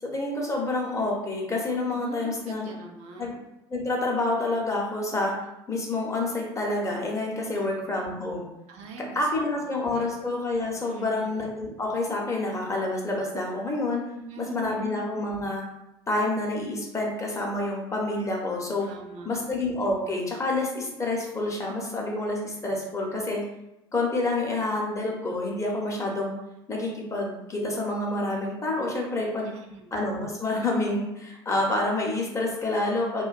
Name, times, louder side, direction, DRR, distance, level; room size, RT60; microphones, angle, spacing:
voice 1, 0.0-2.7 3.2-3.3 3.7-5.4 5.7-8.5 9.1-14.0 14.4-15.6 16.1-18.9 19.2-23.4 23.9-26.4 26.7-29.5 29.9-33.3, left 2 dB, 20° left, -1 dB, 0.7 m, -28 dB
voice 2, 1.9-3.4 7.5-7.6 8.7-9.3 9.6-10.1 10.9-11.4 14.2-14.9 18.8-19.5 29.4-29.9, right 4 dB, 55° right, 1 dB, 0.4 m, -44 dB
2.5 x 2.2 x 2.3 m, 0.90 s
figure-of-eight pair, 60°, 14 cm